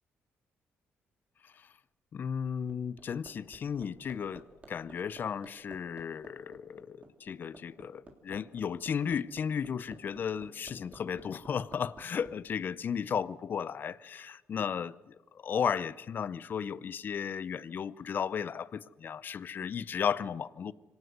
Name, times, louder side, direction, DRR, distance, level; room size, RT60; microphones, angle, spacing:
voice 1, 2.1-15.1 15.4-20.7, left 7 dB, 40° left, 0.6 m, -34 dB
Hammer, 2.4-12.3 13.7-13.8, right 3 dB, 30° right, 3.4 m, -53 dB
24.5 x 17.5 x 8.0 m
cardioid pair, 140°, 5 cm